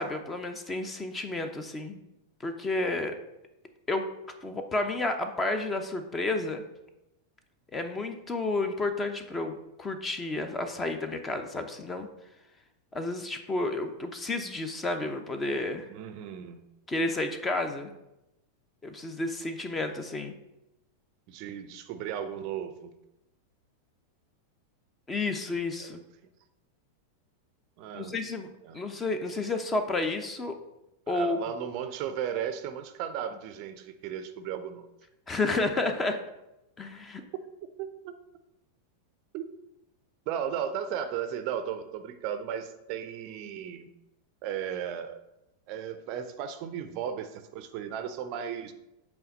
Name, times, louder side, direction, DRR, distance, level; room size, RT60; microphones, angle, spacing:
voice 1, 0.0-2.0 2.4-3.1 3.9-4.1 4.4-6.6 7.7-12.1 12.9-15.9 16.9-17.9 18.8-20.3 25.1-26.0 27.9-28.5 28.7-30.6 31.1-31.4 35.3-36.2 36.8-37.2, left 2 dB, 15° left, 7 dB, 0.8 m, -31 dB
voice 2, 15.9-16.6 21.3-22.9 25.8-26.0 27.8-28.1 28.6-28.8 31.1-34.9 37.8-38.1 39.3-39.4 40.3-43.9 44.4-45.2 45.7-48.7, right 9 dB, 45° right, 10 dB, 0.5 m, -35 dB
8.1 x 3.5 x 5.2 m, 0.91 s
figure-of-eight pair, 90°, 0 cm